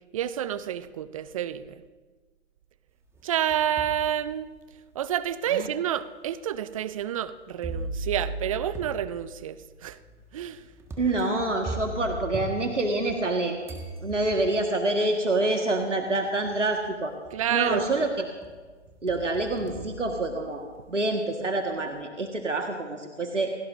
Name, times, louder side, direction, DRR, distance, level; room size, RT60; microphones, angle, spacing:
voice 1, 0.1-1.8 3.2-4.5 4.9-10.0 10.3-10.6 17.3-17.9, right 10 dB, 30° right, 16 dB, 0.6 m, -29 dB
sound 1, 3.1-4.0 4.6-4.7 5.6-5.7 7.6-13.3 13.7-14.7 15.8-15.9 16.4-16.9 17.2-18.0 18.4-20.8, right 1 dB, 5° right, 1.8 m, -38 dB
voice 2, 11.0-13.6 14.0-17.1 17.5-18.1 19.0-23.6, right 2 dB, 80° right, 3 dB, 1.9 m, -27 dB
29.0 x 17.5 x 2.7 m, 1.4 s
figure-of-eight pair, 125°, 36 cm